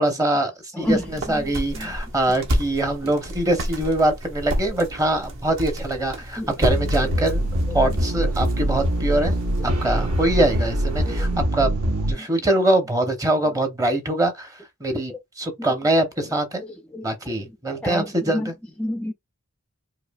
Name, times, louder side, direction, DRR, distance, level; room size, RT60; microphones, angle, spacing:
voice 1, 0.0-7.4 7.7-9.3 9.6-11.7 12.1-14.5 14.8-16.6 17.0-18.5, right 1 dB, 15° right, 0.7 m, -23 dB
voice 2, 0.7-1.1 1.3-1.4 1.7-1.9 6.4-6.5 7.7-7.8 11.1-11.3 12.2-12.3 16.9-17.0 17.8-18.5 18.8-19.1, left 1 dB, 5° left, 0.3 m, -28 dB
sound 1, 0.8-11.3, equal, 65° right, 1.2 m, -31 dB
sound 2, 6.7-12.1, right 1 dB, 85° right, 1.0 m, -23 dB
4.7 x 2.4 x 2.2 m
head